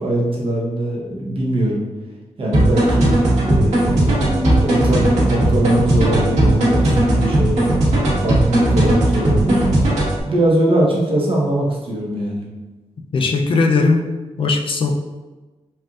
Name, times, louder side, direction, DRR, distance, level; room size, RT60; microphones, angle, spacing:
voice 1, 0.0-1.9 2.4-4.1 4.6-7.7 8.2-9.6 10.2-12.5, right 1 dB, 50° right, -4 dB, 1.0 m, -21 dB
sound 1, 2.5-10.2, right 1 dB, 80° right, 1.4 m, -17 dB
sound 2, 4.0-7.4, equal, 20° right, 0.8 m, -31 dB
voice 2, 13.1-14.1 14.4-14.9, left 3 dB, 50° left, 3 dB, 0.4 m, -18 dB
4.3 x 2.5 x 2.4 m, 1.2 s
wide cardioid pair, 135°, 12 cm